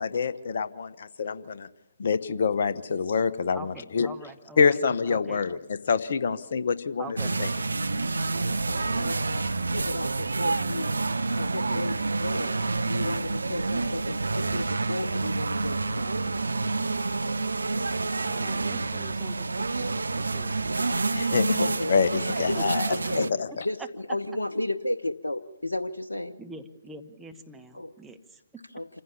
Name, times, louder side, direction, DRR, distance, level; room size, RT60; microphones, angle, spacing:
voice 1, 0.0-1.7 2.0-4.1 4.6-5.6 5.9-7.5 21.1-22.8 23.4-23.5, left 5 dB, 55° left, 1.1 m, -26 dB
voice 2, 3.5-5.6 7.0-7.4 18.2-20.6 22.5-23.6 26.4-28.6, right 2 dB, 5° right, 1.1 m, -45 dB
sound 1, 7.2-23.3, right 3 dB, 75° right, 0.8 m, -28 dB
voice 3, 8.3-10.9 11.4-12.6 12.9-16.4 21.6-21.9 22.3-22.6 22.9-23.3 23.6-26.4 27.7-27.9 28.7-28.9, left 1 dB, 85° left, 0.7 m, -33 dB
27.0 x 15.0 x 7.1 m
figure-of-eight pair, 135°, 0 cm